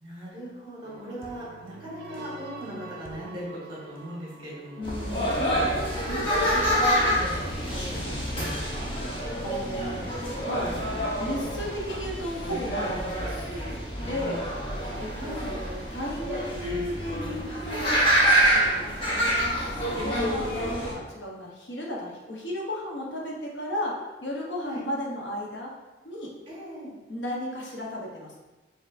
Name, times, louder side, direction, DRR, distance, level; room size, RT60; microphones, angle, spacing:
voice 1, 0.0-4.8 5.4-8.9 14.5-15.5 24.6-24.8 26.5-26.9, equal, 30° right, -6 dB, 1.4 m, -39 dB
sound 1, 0.8-13.4, right 1 dB, 55° right, 0.6 m, -46 dB
voice 2, 4.8-5.5 9.1-14.4 15.0-25.7 26.0-26.3 27.1-28.4, left 1 dB, 85° left, -2 dB, 0.9 m, -35 dB
sound 2, 4.8-20.9, equal, 30° left, 0.9 m, -27 dB
5.5 x 2.7 x 2.5 m, 1.1 s
head